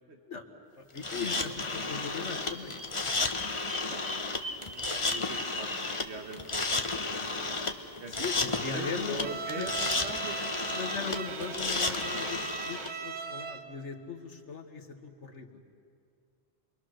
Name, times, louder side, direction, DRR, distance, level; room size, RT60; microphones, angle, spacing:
voice 1, 0.8-2.7 5.0-5.1 8.1-9.7 10.7-15.6, left 5 dB, 85° left, 4 dB, 1.9 m, -39 dB
sound 1, 1.0-12.9, left 3 dB, 30° left, 1.1 m, -33 dB
Bird vocalization bird call bird song, 2.3-6.0, left 1 dB, 10° left, 1.7 m, -41 dB
voice 2, 4.7-5.7 6.0-6.9 7.2-7.3 8.0-8.3 8.6-10.4, right 3 dB, 70° right, 5 dB, 1.8 m, -41 dB
Bowed string instrument, 9.2-13.8, right 5 dB, 40° right, 0.9 m, -38 dB
27.5 x 22.5 x 6.5 m, 2.4 s
omnidirectional pair, 1.2 m